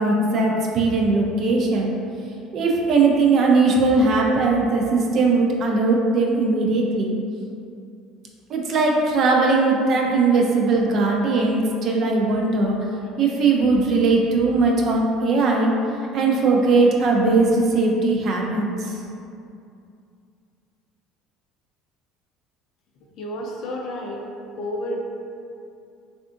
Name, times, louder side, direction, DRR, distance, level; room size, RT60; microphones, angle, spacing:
voice 1, 0.0-1.9 2.5-7.1 8.5-12.8 13.2-15.7 16.1-19.0, right 3 dB, 55° right, 0 dB, 0.5 m, -19 dB
voice 2, 23.2-24.2 24.6-25.0, left 1 dB, 60° left, 0 dB, 0.5 m, -30 dB
3.4 x 2.4 x 2.5 m, 2.5 s
hypercardioid pair, 75°, 0 cm